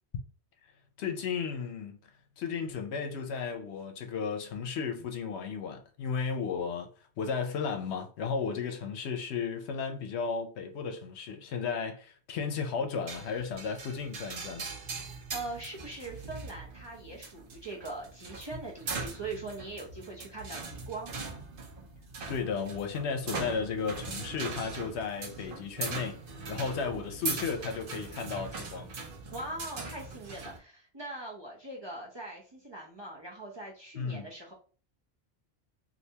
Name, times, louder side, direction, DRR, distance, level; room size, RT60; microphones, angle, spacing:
voice 1, 1.0-2.0 2.4-6.9 7.2-14.7 22.3-26.2 26.5-28.9 34.0-34.3, left 5 dB, 75° left, 0.9 m, -34 dB
sound 1, 13.1-30.6, right 4 dB, 55° right, 0.8 m, -40 dB
voice 2, 15.1-21.1 26.7-27.2 29.3-34.5, right 2 dB, 30° right, 0.6 m, -42 dB
3.3 x 2.6 x 2.7 m
omnidirectional pair, 1.2 m